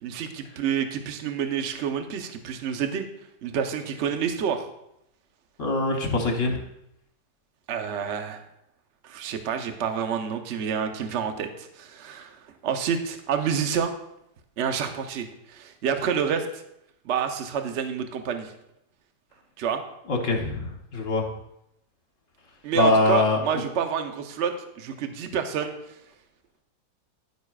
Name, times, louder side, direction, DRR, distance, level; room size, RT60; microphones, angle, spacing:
voice 1, 0.0-3.0 3.4-4.7 7.7-8.4 9.0-13.9 14.6-16.6 17.0-18.5 19.6-19.8 22.6-25.7, right 7 dB, 55° right, 6 dB, 0.9 m, -28 dB
voice 2, 5.6-6.6 20.1-21.2 22.7-23.6, left 2 dB, 50° left, 2 dB, 1.3 m, -23 dB
10.5 x 9.3 x 2.4 m, 0.79 s
omnidirectional pair, 1.9 m